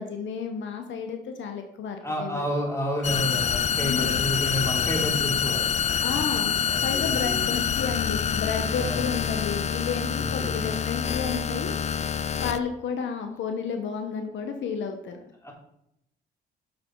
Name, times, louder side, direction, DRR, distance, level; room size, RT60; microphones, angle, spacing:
voice 1, 0.0-2.5 3.8-4.2 6.0-6.6 6.8-11.7 12.4-15.2, left 6 dB, 70° left, 5 dB, 1.0 m, -31 dB
voice 2, 2.0-5.6 6.7-7.4 8.8-9.0 10.2-10.8 15.4-15.5, equal, 15° left, -1 dB, 3.0 m, -30 dB
sound 1, 3.0-12.6, left 7 dB, 35° left, 0.4 m, -26 dB
6.9 x 6.5 x 4.5 m, 0.78 s
cardioid pair, 90°, 20 cm